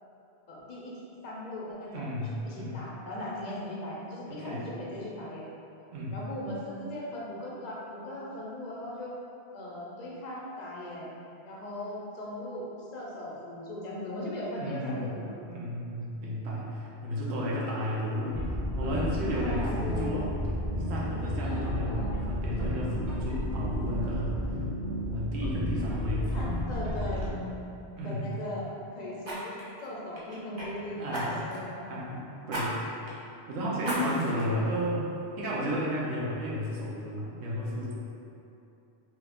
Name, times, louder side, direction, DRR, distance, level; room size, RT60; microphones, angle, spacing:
voice 1, 0.5-5.4 6.1-9.2 9.5-11.1 11.4-15.4 19.3-20.3 21.4-22.2 26.3-27.6 28.0-28.7 28.9-31.9 32.4-32.6, left 1 dB, 50° left, -4 dB, 0.6 m, -38 dB
voice 2, 1.9-2.8 4.3-4.7 5.9-6.2 14.6-15.2 15.5-18.4 18.8-20.3 20.9-24.4 25.1-26.4 28.0-28.4 30.9-31.4 31.9-32.8 33.5-37.9, equal, 85° right, -5 dB, 0.9 m, -33 dB
sound 1, 18.3-27.3, equal, 65° right, 1.2 m, -32 dB
Fire, 26.5-26.7 27.1-27.3 29.2-30.7 31.1-31.7 32.5-32.7 33.1-33.2 33.8-34.4 35.0-35.1, right 1 dB, 35° right, 0.6 m, -36 dB
3.0 x 2.3 x 3.4 m, 2.8 s
omnidirectional pair, 1.1 m